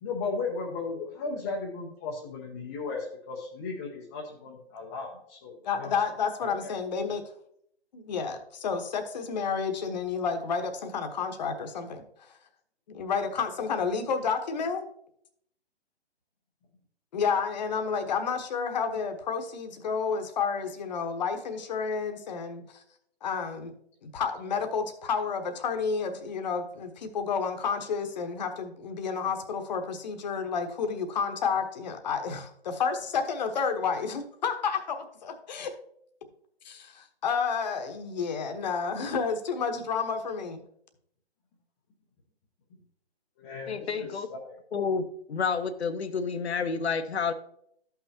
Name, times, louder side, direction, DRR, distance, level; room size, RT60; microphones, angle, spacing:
voice 1, 0.0-5.9 6.6-6.7 43.4-44.6, left 4 dB, 15° left, -2 dB, 0.6 m, -36 dB
voice 2, 5.6-7.2 7.9-12.3 12.9-14.8 17.1-22.8 23.2-23.7 24.0-35.7 36.6-40.6, left 5 dB, 40° left, 6 dB, 1.0 m, -30 dB
voice 3, 43.7-44.3 44.7-47.3, left 5 dB, 75° left, 11 dB, 1.0 m, -29 dB
13.0 x 5.8 x 2.8 m, 0.70 s
hypercardioid pair, 150°, 33 cm